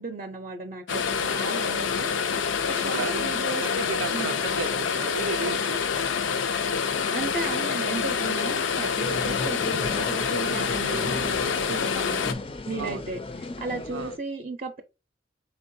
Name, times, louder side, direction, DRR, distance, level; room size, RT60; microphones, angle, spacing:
voice 1, 0.0-2.1 2.7-3.6 4.1-4.4 7.1-12.3 12.7-13.2 13.6-14.8, right 3 dB, 40° right, 0.5 m, -35 dB
sound 1, 0.9-12.3, left 6 dB, 90° left, 0.5 m, -27 dB
voice 2, 2.8-3.3 3.6-5.8 12.8-13.0 13.9-14.1, right 6 dB, 85° right, 0.4 m, -34 dB
sound 2, 9.0-14.2, left 2 dB, 30° left, 0.4 m, -35 dB
4.3 x 3.7 x 2.7 m
head